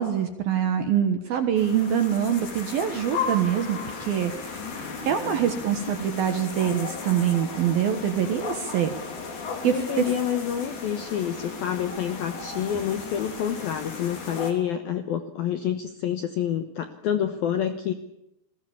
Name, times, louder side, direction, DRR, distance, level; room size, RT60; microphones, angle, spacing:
voice 1, 0.0-8.9 9.6-10.1, right 9 dB, 65° right, 7 dB, 2.5 m, -25 dB
sound 1, 1.6-14.5, left 4 dB, 40° left, 4.2 m, -35 dB
voice 2, 9.6-17.9, left 9 dB, 75° left, 8 dB, 2.2 m, -28 dB
29.0 x 20.5 x 7.2 m, 0.84 s
omnidirectional pair, 6.0 m